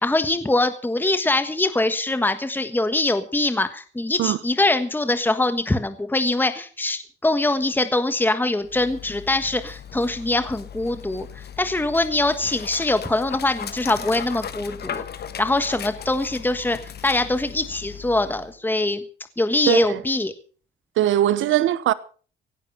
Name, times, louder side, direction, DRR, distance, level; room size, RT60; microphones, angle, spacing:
voice 1, 0.0-15.0 15.4-16.8 17.0-19.0 19.4-20.3, left 2 dB, 10° left, 1.4 m, -23 dB
Dog, 8.6-18.5, left 8 dB, 55° left, 1.3 m, -37 dB
voice 2, 19.7-20.0 21.0-21.9, right 12 dB, 80° right, 1.1 m, -20 dB
17.0 x 11.5 x 5.6 m
cardioid pair, 90°, 20 cm